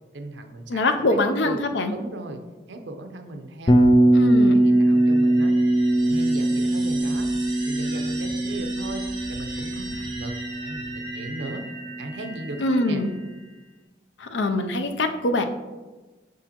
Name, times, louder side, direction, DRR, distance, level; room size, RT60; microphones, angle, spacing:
voice 1, 0.1-1.6 1.9-2.4 2.7-5.5 5.9-7.3 7.6-9.0 9.3-10.3 10.6-11.6 12.0-13.0, right 1 dB, 85° right, 6 dB, 0.7 m, -37 dB
voice 2, 0.7-1.9 4.1-4.5 12.6-13.1 14.2-15.4, left 2 dB, 80° left, 7 dB, 0.5 m, -23 dB
Bass guitar, 3.7-11.7, right 1 dB, 25° left, 0.4 m, -21 dB
sound 1, 4.4-13.7, right 2 dB, 25° right, 0.7 m, -39 dB
6.2 x 5.8 x 2.9 m, 1.2 s
head